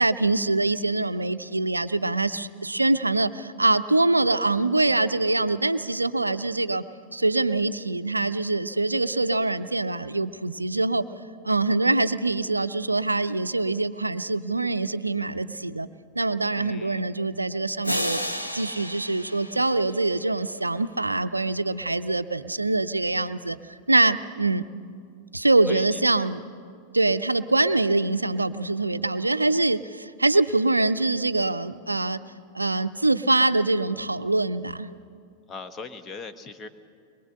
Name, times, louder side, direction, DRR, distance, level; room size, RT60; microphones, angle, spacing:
voice 1, 0.0-6.8 7.1-11.1 11.4-15.9 16.1-18.2 18.5-23.6 23.9-24.6 25.3-26.4 26.9-32.2 32.5-34.9, right 2 dB, 85° right, 14 dB, 0.5 m, -24 dB
voice 2, 16.5-17.1 25.7-26.0 35.5-36.7, left 4 dB, 25° left, 8 dB, 1.3 m, -40 dB
sound 1, 17.8-20.7, left 1 dB, 90° left, 1.3 m, -32 dB
22.5 x 22.5 x 6.6 m, 2.3 s
figure-of-eight pair, 90°, 0 cm